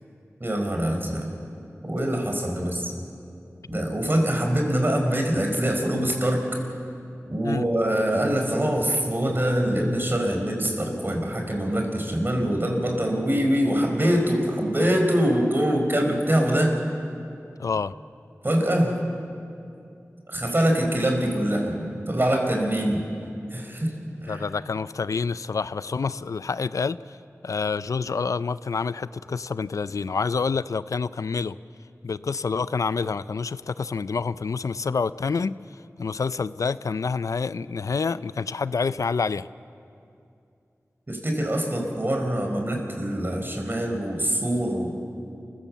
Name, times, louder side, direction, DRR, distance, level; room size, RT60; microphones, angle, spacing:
voice 1, 0.4-1.3 1.8-2.9 3.7-6.5 7.3-16.8 18.4-18.9 20.3-23.0 23.5-23.9 24.2-24.5 41.1-44.9, equal, 40° right, 2 dB, 4.6 m, -24 dB
voice 2, 17.6-17.9 24.3-27.2 27.4-31.6 32.0-35.5 36.0-39.5, left 5 dB, 85° left, 16 dB, 0.4 m, -27 dB
28.0 x 16.0 x 7.3 m, 2.6 s
cardioid pair, 40°, 5 cm